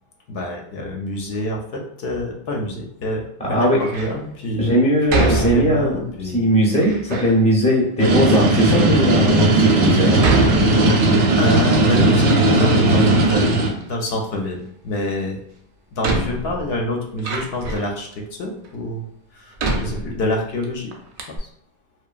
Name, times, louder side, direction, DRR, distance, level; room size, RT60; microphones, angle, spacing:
voice 1, 0.3-4.7 5.1-6.4 7.1-7.2 11.3-13.6 13.9-15.4 15.9-19.1 19.3-20.9 21.4-21.5, left 1 dB, 65° left, 1 dB, 0.7 m, -27 dB
voice 2, 3.4-3.8 4.6-6.0 6.3-10.3, equal, 5° left, -4 dB, 0.5 m, -19 dB
Door, 3.7-4.2 5.1-6.1 6.7-7.4 8.1-8.2 8.9-9.0 10.2-11.3 11.7-12.8 13.0-13.9 15.2-15.3 16.0-18.0 18.6-18.7 19.6-20.6 20.9-21.0 21.2-21.4, right 3 dB, 60° right, 0.6 m, -26 dB
sound 1, 8.0-13.7, right 2 dB, 85° right, 0.9 m, -16 dB
2.8 x 2.2 x 2.3 m, 0.70 s
omnidirectional pair, 1.2 m